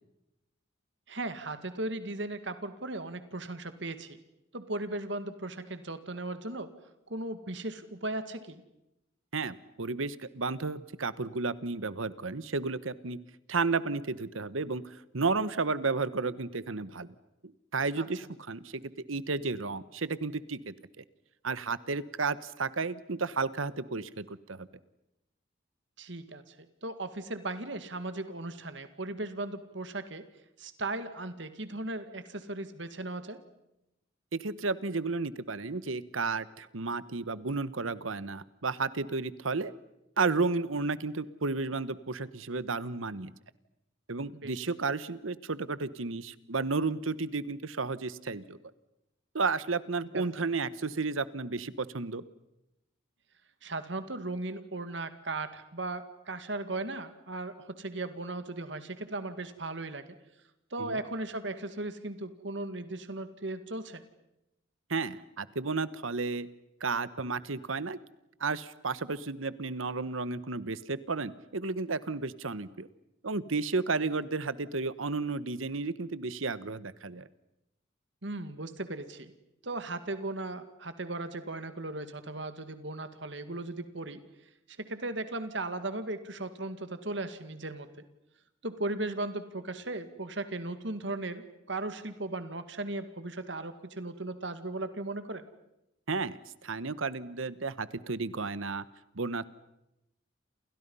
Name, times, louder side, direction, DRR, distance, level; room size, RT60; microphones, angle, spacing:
voice 1, 1.1-4.2 4.5-6.7 7.1-8.6 18.0-18.1 26.0-26.5 26.8-30.2 30.6-33.4 44.3-44.6 50.1-50.2 53.6-60.0 60.7-64.0 78.2-79.3 79.6-84.2 84.8-87.9 88.6-91.4 91.7-95.5, right 2 dB, 60° right, 10 dB, 2.1 m, -37 dB
voice 2, 9.3-13.2 13.5-17.1 17.4-18.8 19.1-21.0 21.4-24.7 34.3-39.7 40.2-43.3 44.1-48.6 49.3-52.2 60.8-61.0 64.9-66.5 66.8-68.0 68.4-72.9 73.2-77.3 96.1-98.8 99.1-99.5, right 4 dB, 90° right, 16 dB, 1.2 m, -32 dB
28.5 x 28.5 x 5.6 m, 0.87 s
head